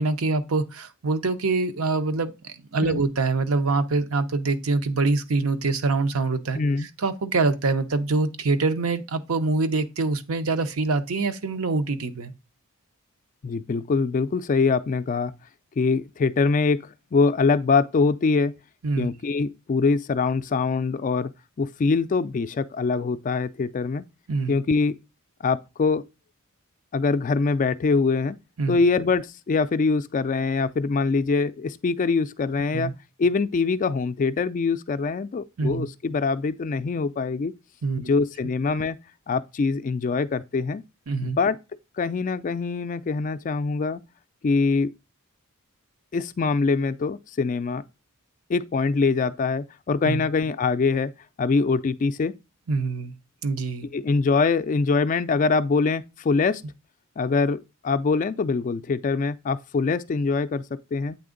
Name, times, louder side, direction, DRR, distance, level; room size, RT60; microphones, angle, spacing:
voice 1, 0.0-12.3 18.8-19.1 24.3-24.6 28.6-28.8 32.7-32.9 35.6-35.9 37.8-38.0 41.1-41.4 50.1-50.2 52.7-53.1 53.4-53.9, right 3 dB, 70° right, 0.7 m, -25 dB
voice 2, 6.5-6.9 13.4-15.3 15.8-16.8 17.1-18.5 19.0-21.3 21.6-24.0 24.5-25.0 25.4-26.0 26.9-28.4 28.7-32.9 33.2-37.5 38.0-39.0 39.3-40.8 41.2-41.6 42.0-44.0 44.4-44.9 46.1-47.8 48.5-51.1 51.4-52.3 53.9-56.6 57.2-61.2, left 4 dB, 35° left, 0.3 m, -23 dB
8.4 x 3.4 x 3.8 m
head